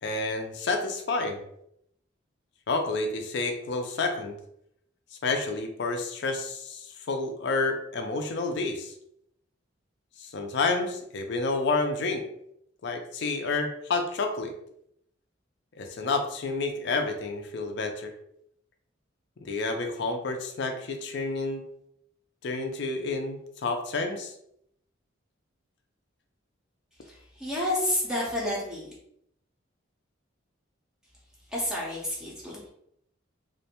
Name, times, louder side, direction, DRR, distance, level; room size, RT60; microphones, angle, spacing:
voice 1, 0.0-1.4 2.7-4.4 5.2-8.9 10.2-12.2 12.8-14.5 15.8-18.1 19.4-21.6 22.4-24.3, left 3 dB, 60° left, 5 dB, 0.4 m, -29 dB
voice 2, 27.1-28.9 31.5-32.7, left 1 dB, 5° right, -5 dB, 0.5 m, -30 dB
2.5 x 2.1 x 2.8 m, 0.74 s
head